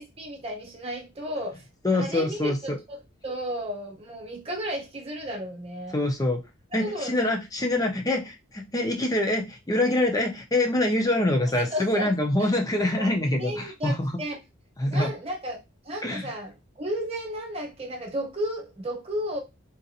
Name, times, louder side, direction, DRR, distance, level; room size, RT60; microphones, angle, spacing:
voice 1, 0.0-1.7 1.9-3.0 3.2-6.0 6.8-7.3 11.6-12.1 12.4-12.5 13.0-13.1 13.4-14.4 14.9-15.6 15.8-19.4, equal, 30° right, 1.0 m, -33 dB
voice 2, 1.8-2.8 5.9-6.4 6.7-14.1 14.8-15.1 16.0-16.2, left 1 dB, 20° left, 0.6 m, -25 dB
3.9 x 2.5 x 2.7 m
head